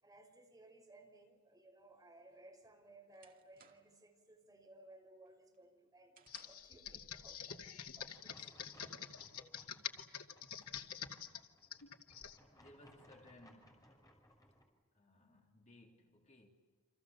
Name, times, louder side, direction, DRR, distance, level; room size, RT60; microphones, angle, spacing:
voice 1, 0.0-6.1 6.4-7.6 7.9-9.0, right 2 dB, 15° right, 5.5 m, -61 dB
sound 1, 2.3-4.1 4.5-4.9 5.3-6.8, right 6 dB, 40° right, 2.3 m, -67 dB
Computer keyboard, 6.3-12.4, left 8 dB, 75° left, 2.2 m, -47 dB
sound 2, 8.1-14.6, left 1 dB, 15° left, 6.3 m, -65 dB
voice 2, 12.5-14.1 14.9-16.5, left 1 dB, 35° left, 3.3 m, -62 dB
29.5 x 27.5 x 7.1 m
head